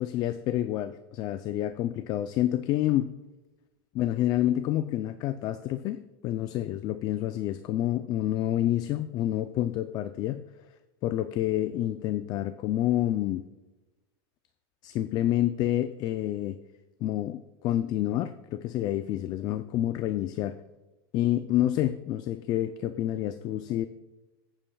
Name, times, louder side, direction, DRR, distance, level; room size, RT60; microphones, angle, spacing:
voice 1, 0.0-3.2 3.9-10.4 11.0-13.4 14.8-16.6 17.0-20.6 21.1-23.9, left 13 dB, 30° left, 12 dB, 0.4 m, -28 dB
21.5 x 8.9 x 2.3 m, 1.1 s
supercardioid pair, 145°, 13 cm